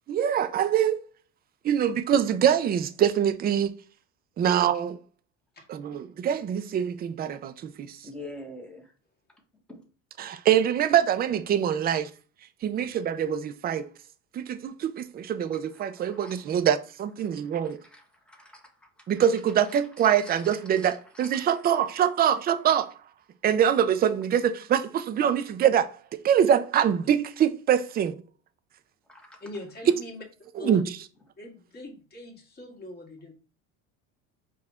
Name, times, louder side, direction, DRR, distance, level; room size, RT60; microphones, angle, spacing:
voice 1, 0.1-1.0 1.6-3.7 4.4-5.0 5.7-7.9 10.2-12.1 12.6-13.9 14.3-17.8 19.1-22.9 23.4-25.9 26.2-28.2 30.6-30.8, right 9 dB, 25° right, 0.4 m, -24 dB
voice 2, 8.0-8.9 9.7-9.8 15.7-16.3 17.6-18.7 19.1-19.2 20.0-21.0 21.2-21.5 29.1-29.4, left 1 dB, 5° left, 1.1 m, -45 dB
voice 3, 29.4-30.2 30.6-30.8 31.4-33.3, left 2 dB, 25° left, 1.7 m, -41 dB
4.8 x 2.4 x 4.2 m
supercardioid pair, 110°, 36 cm